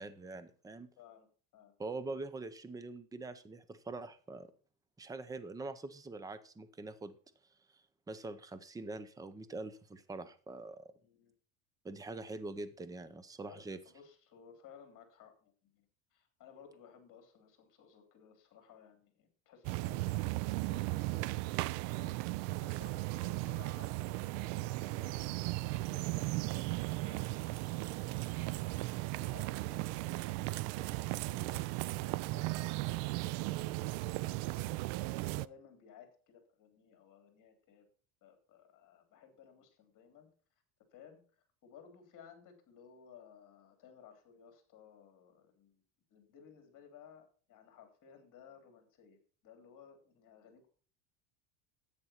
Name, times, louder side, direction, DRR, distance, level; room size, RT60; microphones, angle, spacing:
voice 1, 0.0-0.9 1.8-4.5 5.0-7.1 7.7-7.8 8.1-10.9 11.8-13.8, right 3 dB, 5° right, 12 dB, 0.6 m, -44 dB
voice 2, 1.0-1.7 11.0-11.3 13.4-28.6 29.1-34.9 35.1-37.8 38.2-40.3 40.9-45.8 46.1-50.7, left 7 dB, 40° left, 5 dB, 3.3 m, -59 dB
sound 1, 19.6-35.5, right 20 dB, 70° right, 0.6 m, -36 dB
10.5 x 9.0 x 4.4 m, 0.42 s
cardioid pair, 140°, 50 cm